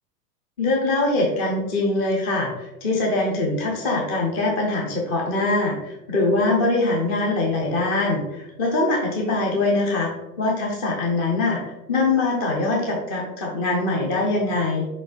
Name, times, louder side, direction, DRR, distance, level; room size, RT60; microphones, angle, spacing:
voice 1, 0.6-10.1 10.4-14.9, left 2 dB, 15° left, -1 dB, 0.3 m, -23 dB
4.4 x 3.9 x 2.4 m, 1.0 s
figure-of-eight pair, 100°, 49 cm